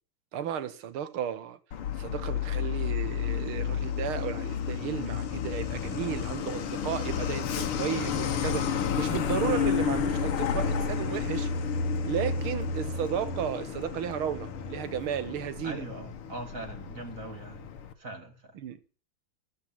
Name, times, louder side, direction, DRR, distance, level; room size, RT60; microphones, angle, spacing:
voice 1, 0.3-1.6 2.0-11.5 12.0-15.9 18.5-18.8, right 9 dB, 75° right, 2.0 m, -34 dB
Truck, 1.7-17.9, left 7 dB, 85° left, 2.2 m, -31 dB
voice 2, 15.6-17.7 18.0-18.3, right 2 dB, 40° right, 2.5 m, -40 dB
13.0 x 8.8 x 7.3 m
omnidirectional pair, 2.4 m